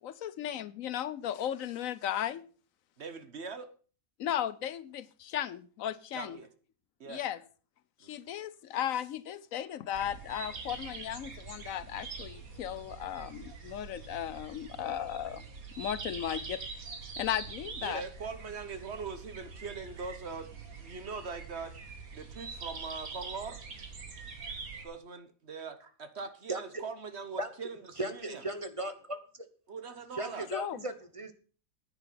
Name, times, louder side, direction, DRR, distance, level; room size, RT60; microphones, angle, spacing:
voice 1, 0.0-2.4 4.2-6.4 7.1-7.4 8.0-15.4 15.8-16.6 17.2-18.0 30.5-30.8, left 10 dB, 75° left, 1.1 m, -36 dB
voice 2, 3.0-3.7 6.1-6.5 7.0-7.2 8.0-8.1 17.8-20.5 20.8-21.8 22.1-23.6 24.8-28.4 29.7-30.5, right 4 dB, 55° right, 1.3 m, -41 dB
sound 1, 9.9-24.8, right 4 dB, 90° right, 2.2 m, -44 dB
voice 3, 28.0-29.2 30.1-31.3, right 1 dB, 25° right, 1.0 m, -36 dB
9.9 x 9.2 x 5.7 m
omnidirectional pair, 1.4 m